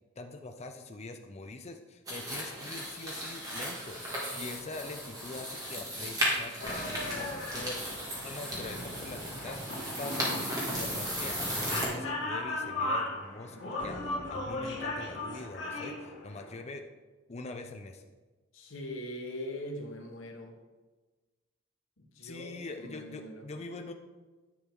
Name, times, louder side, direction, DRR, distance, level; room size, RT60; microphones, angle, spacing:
voice 1, 0.2-7.8 8.2-16.8 17.3-18.0 22.2-23.9, left 3 dB, 35° left, 5 dB, 0.5 m, -44 dB
sound 1, 2.1-11.9, equal, 20° right, 2.1 m, -35 dB
sound 2, 6.6-16.5, left 2 dB, 65° left, 2.2 m, -37 dB
voice 2, 18.5-20.6 22.0-23.5, left 1 dB, 80° left, 2 dB, 1.3 m, -41 dB
9.9 x 5.9 x 3.6 m, 1.2 s
head